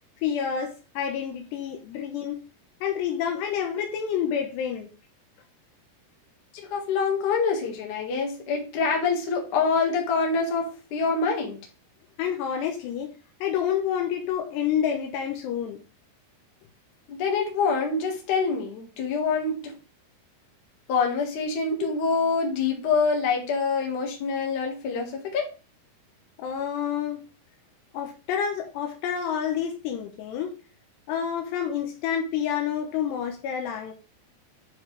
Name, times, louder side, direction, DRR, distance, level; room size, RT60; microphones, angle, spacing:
voice 1, 0.2-2.4 2.8-4.9 12.2-13.1 13.4-15.8 26.4-27.2 27.9-30.5 31.1-33.9, left 8 dB, 80° left, 3.0 m, -28 dB
voice 2, 6.7-11.6 17.1-19.7 20.9-25.5, left 5 dB, 55° left, 2.8 m, -25 dB
9.7 x 4.6 x 3.3 m
omnidirectional pair, 4.9 m